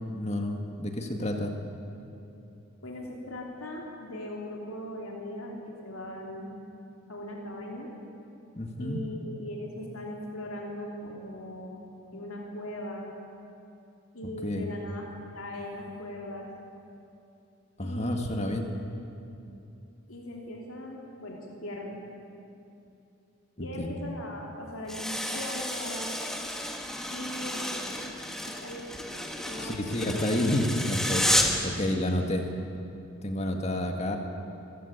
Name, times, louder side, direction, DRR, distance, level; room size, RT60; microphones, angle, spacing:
voice 1, 0.1-1.5 8.6-9.0 14.4-14.7 17.8-18.6 23.6-24.0 29.6-31.3 31.6-32.5 33.2-34.2, left 1 dB, 30° left, 4 dB, 2.0 m, -29 dB
voice 2, 2.8-6.5 7.1-7.9 8.8-11.8 12.1-13.1 14.1-15.0 15.3-16.5 17.8-18.6 20.1-22.0 23.6-26.2 27.1-27.8 28.1-30.3, left 1 dB, 90° left, -1 dB, 3.4 m, -39 dB
sound 1, 24.9-31.7, left 1 dB, ahead, 1.6 m, -31 dB
26.0 x 15.5 x 8.4 m, 2.8 s
head